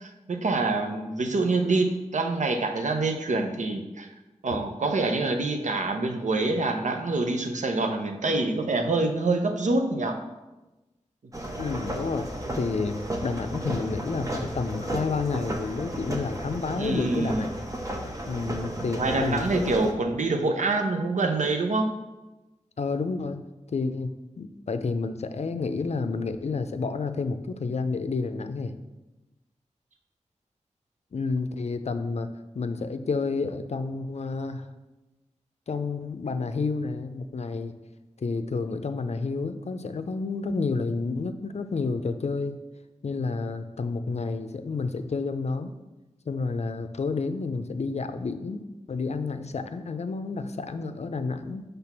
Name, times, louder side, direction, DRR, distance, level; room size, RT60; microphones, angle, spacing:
voice 1, 0.0-4.1 4.4-10.2 16.7-17.5 18.7-21.9, right 3 dB, 85° right, 5 dB, 0.7 m, -26 dB
sound 1, 11.3-19.9, right 1 dB, 25° right, 0.9 m, -34 dB
voice 2, 11.6-12.3 12.5-17.5 18.3-19.8 22.8-23.4 23.7-28.7 31.1-32.3 32.5-34.7 35.7-37.7 38.2-42.6 43.0-45.7 46.3-48.6 48.9-51.6, left 4 dB, 65° left, 9 dB, 0.5 m, -30 dB
5.9 x 3.4 x 5.8 m, 1.1 s
wide cardioid pair, 55°, 12 cm